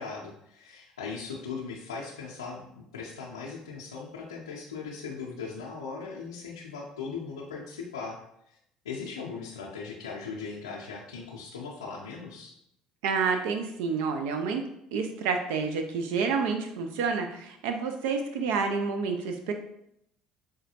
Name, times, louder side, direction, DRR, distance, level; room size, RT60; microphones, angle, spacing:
voice 1, 0.0-8.2 8.5-8.6 8.8-12.5, left 5 dB, 90° left, -4 dB, 0.5 m, -39 dB
voice 2, 13.0-14.6 14.9-19.5, right 5 dB, 70° right, 5 dB, 0.4 m, -29 dB
4.8 x 2.2 x 2.8 m, 0.77 s
hypercardioid pair, 60°, 3 cm